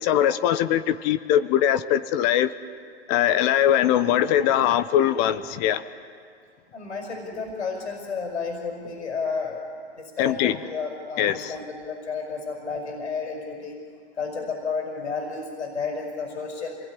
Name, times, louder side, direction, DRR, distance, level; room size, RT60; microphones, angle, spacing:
voice 1, 0.0-2.5 3.1-5.8 10.2-10.6 11.2-11.6, left 11 dB, 40° left, 12 dB, 1.0 m, -21 dB
voice 2, 6.7-9.6 10.0-13.8 14.2-16.8, left 5 dB, 80° left, 2 dB, 5.8 m, -32 dB
27.0 x 20.5 x 9.9 m, 2.2 s
hypercardioid pair, 110°, 34 cm